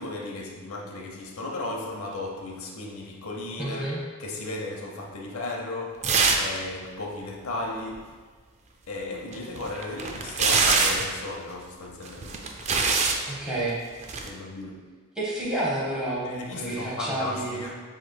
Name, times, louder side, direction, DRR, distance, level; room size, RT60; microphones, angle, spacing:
voice 1, 0.0-3.9 4.2-8.1 8.9-13.2 14.2-14.9 16.2-17.7, left 2 dB, 70° left, 0 dB, 0.7 m, -35 dB
voice 2, 3.6-4.0 13.2-13.8 15.2-17.7, right 1 dB, 5° right, -8 dB, 0.9 m, -30 dB
sound 1, 6.0-6.6 6.8-6.9 9.3-11.1 12.1-13.2 14.0-14.3, right 4 dB, 30° right, 0.4 m, -23 dB
7.2 x 3.0 x 2.2 m, 1.4 s
head